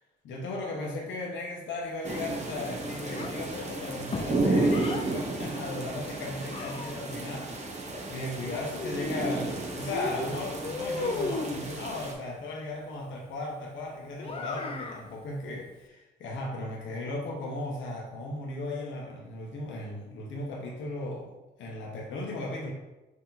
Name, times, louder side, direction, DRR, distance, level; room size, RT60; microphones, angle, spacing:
voice 1, 0.2-7.7 8.1-21.3 21.6-22.7, left 2 dB, 75° left, -1 dB, 0.9 m, -36 dB
sound 1, 2.0-12.1, right 2 dB, 35° right, 0.9 m, -33 dB
Child speech kid speaking, 3.1-5.1 6.0-7.2 8.4-9.6 9.9-11.7 14.2-15.1, left 3 dB, 30° left, 0.5 m, -36 dB
4.6 x 2.9 x 3.9 m, 1.0 s
cardioid pair, 90°, 20 cm